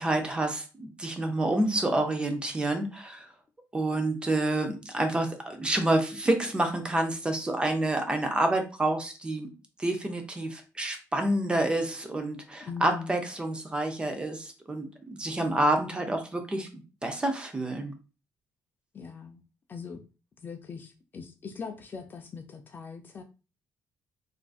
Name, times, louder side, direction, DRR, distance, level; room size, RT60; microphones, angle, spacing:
voice 1, 0.0-3.3 3.7-9.5 9.8-14.9 15.2-16.7 17.0-17.9, right 1 dB, 15° right, 0.5 m, -28 dB
voice 2, 12.7-13.2 15.5-15.9 18.9-19.4 19.7-20.0 20.4-23.2, left 5 dB, 30° left, 0.4 m, -41 dB
3.7 x 2.5 x 2.3 m
cardioid pair, 145°, 6 cm